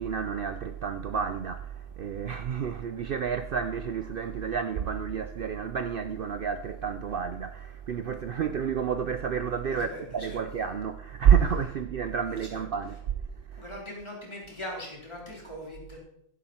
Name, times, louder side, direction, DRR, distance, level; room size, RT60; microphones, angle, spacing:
voice 1, 0.0-13.2 13.5-13.6, right 7 dB, 85° right, 0.4 m, -29 dB
voice 2, 9.7-10.4 12.3-12.6 13.6-16.0, left 1 dB, 20° left, 3.7 m, -41 dB
11.0 x 11.0 x 4.3 m
omnidirectional pair, 1.6 m